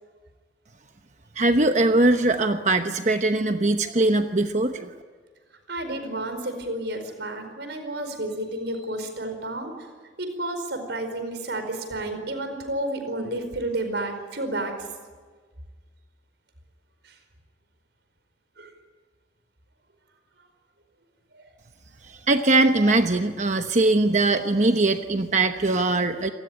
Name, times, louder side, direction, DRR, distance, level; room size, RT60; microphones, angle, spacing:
voice 1, 1.4-4.9 22.1-26.3, right 2 dB, 40° right, 7 dB, 1.0 m, -21 dB
voice 2, 5.7-9.7 10.2-14.9 17.0-17.1 18.6-18.7 21.3-21.5, right 1 dB, 70° right, 7 dB, 4.8 m, -31 dB
27.5 x 19.0 x 9.9 m, 1.5 s
head